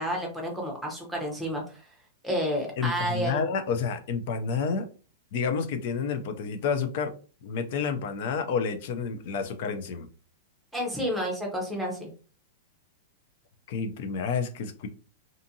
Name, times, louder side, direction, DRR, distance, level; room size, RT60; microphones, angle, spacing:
voice 1, 0.0-1.8 2.2-3.5 10.7-12.1, equal, ahead, -1 dB, 0.7 m, -30 dB
voice 2, 2.8-4.9 5.3-7.1 7.4-10.1 13.7-14.9, left 5 dB, 50° left, 7 dB, 0.5 m, -29 dB
2.6 x 2.5 x 2.7 m, 0.37 s
supercardioid pair, 165°, 0 cm